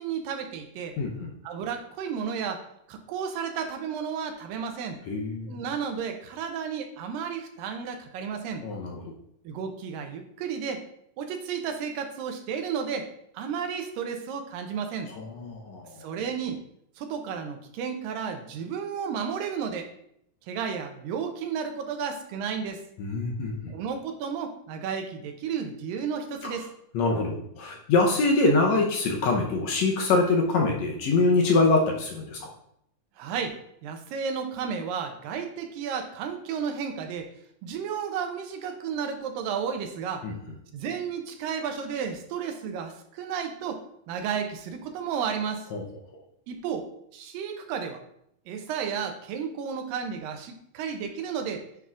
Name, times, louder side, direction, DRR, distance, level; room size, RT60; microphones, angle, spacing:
voice 1, 0.0-1.0 1.4-5.0 5.5-8.6 9.4-10.9 11.2-13.1 13.3-15.1 16.0-16.6 17.0-19.9 20.5-22.8 23.7-26.7 33.2-33.6 33.8-37.3 37.6-40.3 40.7-45.7 46.5-48.0 48.5-51.6, right 6 dB, 80° right, 5 dB, 2.4 m, -32 dB
voice 2, 1.0-1.3 5.1-5.6 8.6-9.0 15.1-16.1 23.0-23.7 26.4-26.5 26.9-32.5 40.2-40.4 45.7-45.8, left 3 dB, 75° left, 0 dB, 1.7 m, -24 dB
9.2 x 5.8 x 2.5 m, 0.72 s
omnidirectional pair, 4.0 m